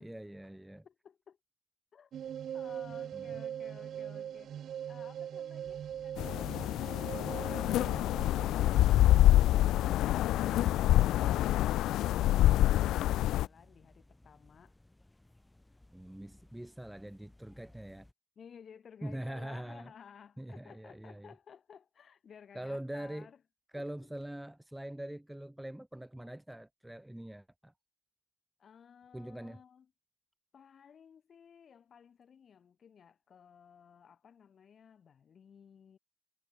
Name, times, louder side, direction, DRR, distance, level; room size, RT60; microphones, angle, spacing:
voice 1, 0.0-0.8 3.1-3.3 10.5-11.0 15.9-18.1 19.0-19.9 20.4-21.3 22.5-23.3 23.7-27.7 29.1-29.6, right 1 dB, 5° right, 2.8 m, -43 dB
voice 2, 0.8-1.4 1.9-2.1 2.5-14.8 18.4-23.4 23.7-23.9 28.6-29.9 30.5-36.0, left 7 dB, 50° left, 7.8 m, -56 dB
sound 1, 2.1-10.7, right 9 dB, 65° right, 2.7 m, -42 dB
sound 2, 5.6-18.1, left 1 dB, 10° left, 5.7 m, -61 dB
sound 3, 6.2-13.5, left 14 dB, 85° left, 0.4 m, -26 dB
cardioid pair, 90°, 0 cm